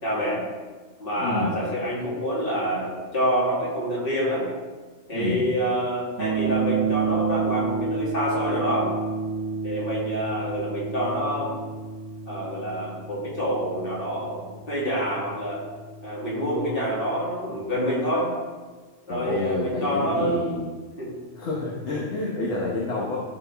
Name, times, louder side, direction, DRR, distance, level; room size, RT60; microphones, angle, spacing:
voice 1, 0.0-0.4 1.0-4.5 5.1-8.9 9.6-11.6 12.3-15.6 16.0-18.3 19.1-20.4 21.0-21.1, equal, 45° left, -7 dB, 2.6 m, -27 dB
voice 2, 1.2-1.5 5.1-5.4 19.1-20.7 21.4-23.2, left 3 dB, 60° left, -4 dB, 1.4 m, -28 dB
sound 1, 6.2-16.3, right 5 dB, 75° right, 1.0 m, -30 dB
13.0 x 4.4 x 3.4 m, 1.4 s
omnidirectional pair, 1.3 m